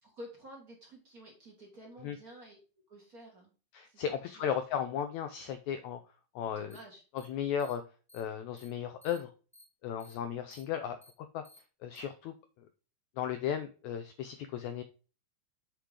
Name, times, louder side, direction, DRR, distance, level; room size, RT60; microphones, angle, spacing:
voice 1, 0.0-2.6 2.9-3.5 3.8-4.0 4.4-4.5 6.5-7.0, equal, 35° right, -1 dB, 1.6 m, -50 dB
voice 2, 3.7-6.0 6.3-6.7 7.1-7.8 8.1-9.3 9.8-11.0 11.3-11.4 11.8-12.7 13.2-14.8, left 8 dB, 85° left, 9 dB, 1.6 m, -35 dB
sound 1, 6.7-6.8 7.2-7.3 7.6-7.7 8.1-8.2 8.6-8.7 9.0-9.2 9.5-9.6 10.0-10.1 10.5-10.6 11.0-11.1 11.4-11.6 11.9-12.0, left 2 dB, ahead, 1.2 m, -57 dB
8.6 x 3.8 x 4.9 m, 0.35 s
omnidirectional pair, 3.9 m